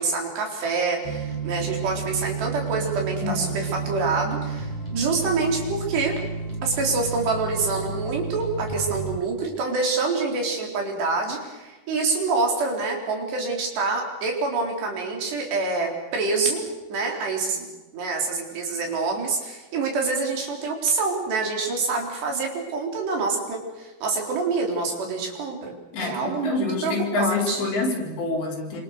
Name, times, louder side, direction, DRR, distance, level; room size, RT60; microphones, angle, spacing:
voice 1, 0.0-6.1 6.6-16.6 16.9-17.7 17.9-27.7, right 4 dB, 70° right, 1 dB, 6.3 m, -26 dB
sound 1, 1.0-9.2, right 5 dB, 10° left, 5.6 m, -31 dB
voice 2, 3.2-3.8 25.9-28.8, left 3 dB, 60° left, -1 dB, 6.5 m, -27 dB
28.0 x 26.0 x 6.8 m, 1.2 s
omnidirectional pair, 5.1 m